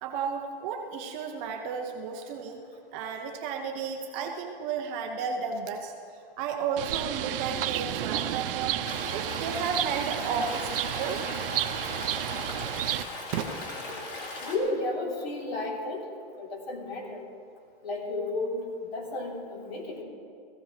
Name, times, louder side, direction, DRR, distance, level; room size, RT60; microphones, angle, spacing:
voice 1, 0.0-2.6 2.9-8.8 9.1-11.2 13.3-13.6, right 6 dB, 15° right, 3 dB, 0.4 m, -33 dB
Bird, 6.8-13.0, right 11 dB, 65° right, 0.7 m, -31 dB
Stream, 8.9-14.6, left 2 dB, 30° left, 2.0 m, -38 dB
voice 2, 14.4-16.1 16.4-17.3 17.8-20.0, left 2 dB, 80° left, -1 dB, 3.1 m, -33 dB
18.0 x 15.0 x 3.1 m, 2.4 s
hypercardioid pair, 160°, 30 cm